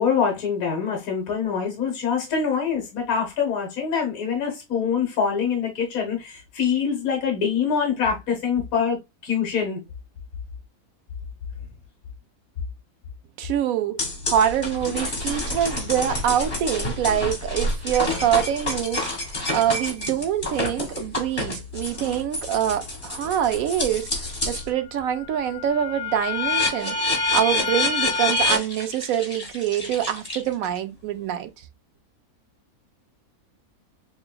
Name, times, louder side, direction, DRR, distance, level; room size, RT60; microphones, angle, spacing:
voice 1, 0.0-9.8, left 6 dB, 70° left, 1.5 m, -25 dB
voice 2, 13.4-27.0 27.3-31.5, right 10 dB, 75° right, 1.0 m, -25 dB
sound 1, 14.0-24.7 25.1-30.8, left 2 dB, 40° left, 2.2 m, -28 dB
6.7 x 2.3 x 2.2 m
omnidirectional pair, 1.5 m